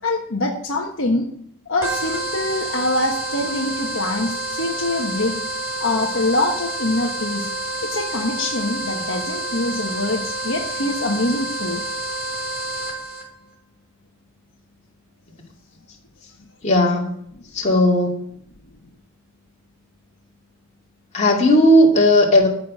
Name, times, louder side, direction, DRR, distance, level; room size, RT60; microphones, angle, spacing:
voice 1, 0.0-1.3 1.6-5.4 5.8-7.5 7.8-11.8 17.3-17.4, left 2 dB, 60° left, 1 dB, 1.4 m, -24 dB
sound 1, 1.8-13.2, right 2 dB, 10° right, 3.4 m, -28 dB
voice 2, 16.6-17.1 17.5-18.2 21.1-22.5, left 1 dB, 30° left, -1 dB, 2.5 m, -15 dB
14.0 x 6.1 x 7.4 m, 0.69 s
head